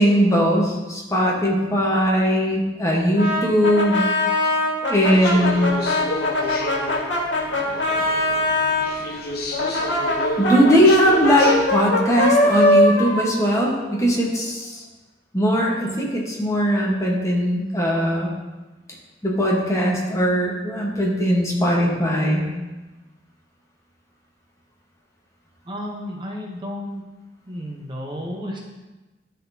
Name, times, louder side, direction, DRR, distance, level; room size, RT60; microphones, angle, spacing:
voice 1, 0.0-4.0 4.9-5.7 10.4-14.8 15.3-18.3 19.2-22.5, equal, 15° left, -2 dB, 1.1 m, -19 dB
Brass instrument, 3.2-8.9 9.5-14.3, left 2 dB, 85° left, 1.5 m, -22 dB
sound 1, 5.0-11.7, left 1 dB, 60° left, 0.8 m, -31 dB
voice 2, 25.7-27.0 27.5-28.6, equal, 25° right, -1 dB, 0.8 m, -32 dB
11.5 x 3.9 x 2.7 m, 1.1 s
head